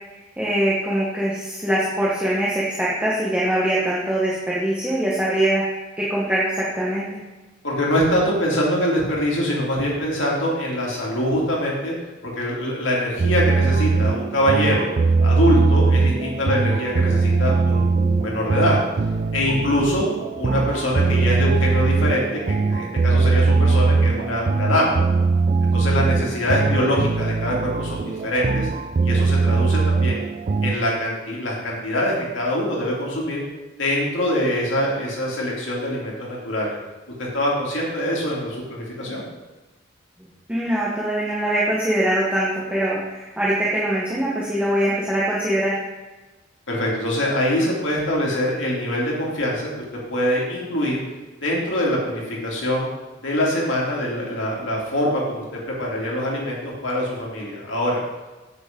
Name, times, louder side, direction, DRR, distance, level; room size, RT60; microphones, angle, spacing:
voice 1, 0.4-5.6 6.0-7.1 40.5-45.8, right 1 dB, 5° right, -6 dB, 1.3 m, -22 dB
voice 2, 7.6-11.9 12.2-14.9 15.2-18.8 19.3-20.1 20.4-25.0 25.7-28.7 29.0-30.2 30.6-33.4 33.8-36.8 37.2-39.2 46.7-49.7 50.1-51.0 51.4-52.9 53.2-58.0, equal, 70° left, -4 dB, 3.0 m, -24 dB
sound 1, 13.2-30.7, right 4 dB, 35° right, 0.3 m, -20 dB
8.3 x 6.9 x 5.3 m, 1.2 s
head